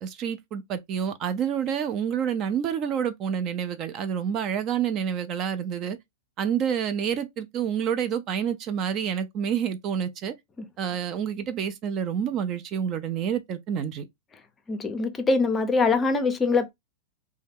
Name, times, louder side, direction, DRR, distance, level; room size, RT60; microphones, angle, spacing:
voice 1, 0.0-6.0 6.4-10.3 10.8-14.1, right 8 dB, 35° right, 0.4 m, -28 dB
voice 2, 14.7-16.7, left 4 dB, 20° left, 0.6 m, -23 dB
2.7 x 2.2 x 3.5 m
supercardioid pair, 135°, 0 cm